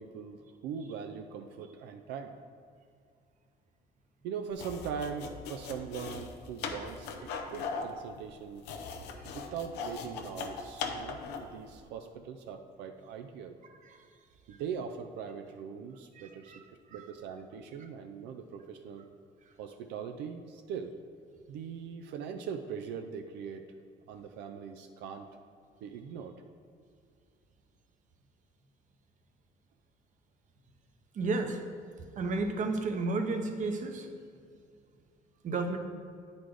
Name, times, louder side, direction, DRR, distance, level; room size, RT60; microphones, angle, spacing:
voice 1, 0.0-2.3 4.2-8.7 9.2-13.6 14.5-16.5 16.9-19.1 19.6-20.9 21.5-23.6 24.1-25.3 25.8-26.4, right 6 dB, 85° right, 5 dB, 0.4 m, -41 dB
sound 1, 4.5-11.6, left 5 dB, 85° left, 0.7 m, -39 dB
voice 2, 16.1-17.1 17.8-17.9 31.1-31.6 32.2-34.1 35.4-35.8, right 3 dB, 45° right, 5 dB, 0.9 m, -33 dB
9.1 x 4.1 x 4.8 m, 2.3 s
cardioid pair, 110°, 17 cm